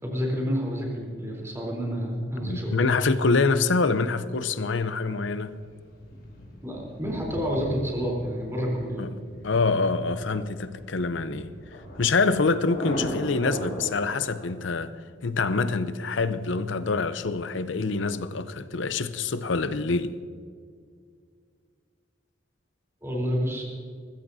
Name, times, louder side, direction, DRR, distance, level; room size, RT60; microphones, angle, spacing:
voice 1, 0.0-2.7 6.6-9.0 23.0-23.6, equal, 15° right, 3.6 m, -29 dB
voice 2, 2.4-5.6 9.0-9.2 9.4-11.5 12.0-14.9 15.2-20.1, left 4 dB, 70° left, 0.7 m, -25 dB
Thunder, 5.4-14.4, equal, 55° left, 4.4 m, -38 dB
22.0 x 15.0 x 2.8 m
head